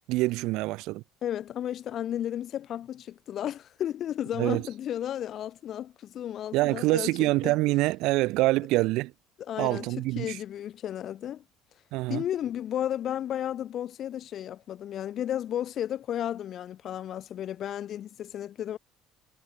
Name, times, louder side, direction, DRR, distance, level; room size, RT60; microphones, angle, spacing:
voice 1, 0.1-1.0 4.4-4.6 6.5-9.1 9.6-10.4 11.9-12.2, right 20 dB, 60° right, 0.4 m, -25 dB
voice 2, 1.2-7.6 9.5-11.4 12.1-18.8, left 11 dB, 35° left, 0.6 m, -33 dB
cardioid pair, 170°, 0 cm